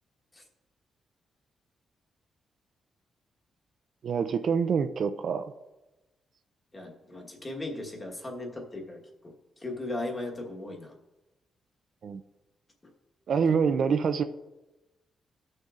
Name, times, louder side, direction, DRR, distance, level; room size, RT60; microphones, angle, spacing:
voice 1, 4.0-5.4 12.0-12.2 13.3-14.2, right 6 dB, 50° right, 9 dB, 0.4 m, -26 dB
voice 2, 6.7-10.9 12.8-12.9 13.5-13.6, left 2 dB, 20° left, 1 dB, 1.2 m, -38 dB
17.0 x 6.5 x 2.4 m, 1.0 s
wide cardioid pair, 165°, 0 cm